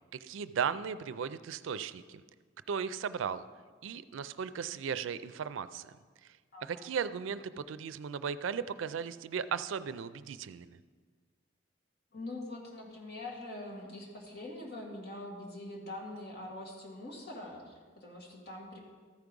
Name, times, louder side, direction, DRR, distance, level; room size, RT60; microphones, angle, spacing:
voice 1, 0.2-2.2 2.7-3.4 3.8-5.9 6.6-10.8, right 7 dB, 85° right, 14 dB, 0.4 m, -36 dB
voice 2, 6.5-6.8 12.1-18.8, left 1 dB, 60° left, -1 dB, 2.0 m, -44 dB
13.5 x 4.8 x 5.2 m, 1.5 s
head